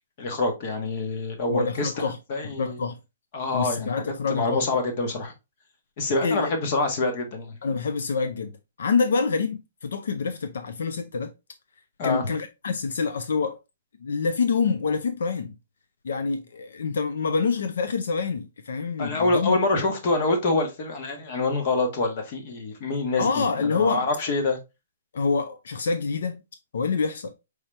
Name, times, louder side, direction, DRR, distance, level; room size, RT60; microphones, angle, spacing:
voice 1, 0.2-1.9 2.3-2.8 3.3-5.3 6.0-7.6 12.0-12.3 19.0-24.6, left 2 dB, 30° left, 1.0 m, -26 dB
voice 2, 1.5-2.2 2.4-3.0 3.5-4.7 6.2-6.5 7.6-11.3 12.0-13.6 14.0-15.5 16.0-19.6 23.2-24.1 25.1-26.4 26.7-27.3, left 5 dB, 65° left, 0.5 m, -26 dB
4.8 x 2.8 x 3.1 m
hypercardioid pair, 175°, 0 cm